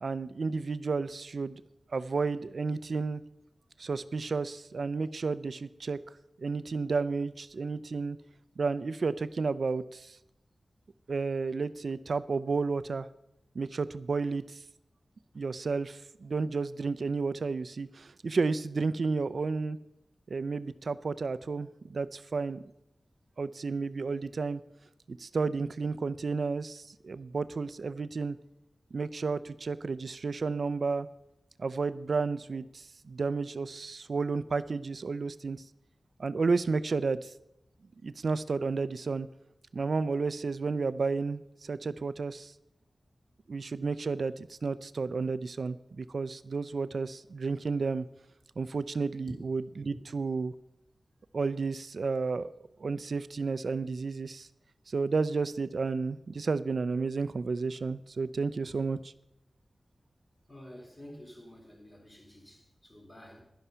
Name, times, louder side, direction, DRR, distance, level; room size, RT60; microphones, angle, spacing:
voice 1, 0.0-1.6 1.9-3.2 3.8-6.0 6.4-8.2 8.6-10.2 11.1-13.1 13.5-14.6 15.3-19.8 20.3-22.6 23.4-24.6 25.1-28.4 28.9-31.1 31.6-35.6 36.2-37.3 38.0-39.3 39.7-42.5 43.5-48.0 48.6-50.5 51.3-52.5 52.8-54.5 54.9-59.1, right 4 dB, 70° right, 15 dB, 0.5 m, -32 dB
voice 2, 60.5-63.4, equal, 20° left, 0 dB, 3.7 m, -49 dB
11.5 x 11.0 x 5.6 m, 0.84 s
wide cardioid pair, 95°, 0 cm